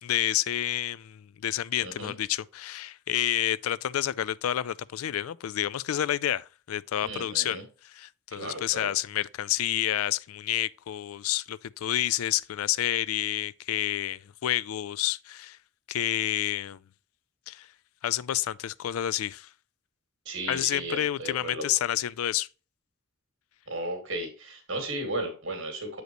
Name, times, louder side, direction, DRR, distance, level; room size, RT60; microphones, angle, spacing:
voice 1, 0.0-15.6 15.9-16.8 17.5-17.7 18.0-19.5 20.5-22.5, left 12 dB, 85° left, 0.4 m, -29 dB
voice 2, 1.8-2.1 7.0-7.6 8.3-8.9 20.3-21.7 23.7-26.0, right 1 dB, 60° right, 2.4 m, -35 dB
7.9 x 5.1 x 3.0 m
head